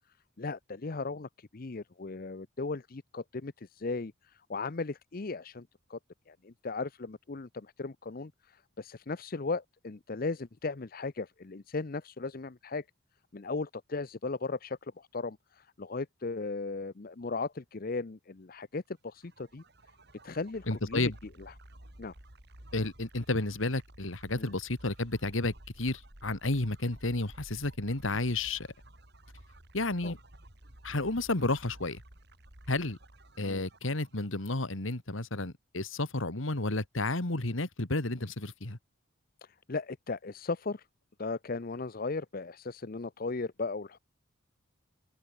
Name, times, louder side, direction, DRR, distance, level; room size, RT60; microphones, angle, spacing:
voice 1, 0.4-6.0 6.3-12.8 13.3-19.6 20.2-21.1 21.4-21.5 22.0-22.1 24.3-24.5 30.0-30.1 33.5-33.7 39.7-40.8 41.2-44.0, left 3 dB, 45° left, 0.7 m, -37 dB
sound 1, 19.1-34.8, right 1 dB, 55° right, 4.4 m, -53 dB
voice 2, 20.7-21.2 22.7-28.7 29.7-30.2 30.8-32.0 32.7-33.0 33.4-38.8, left 2 dB, 75° left, 2.3 m, -31 dB
head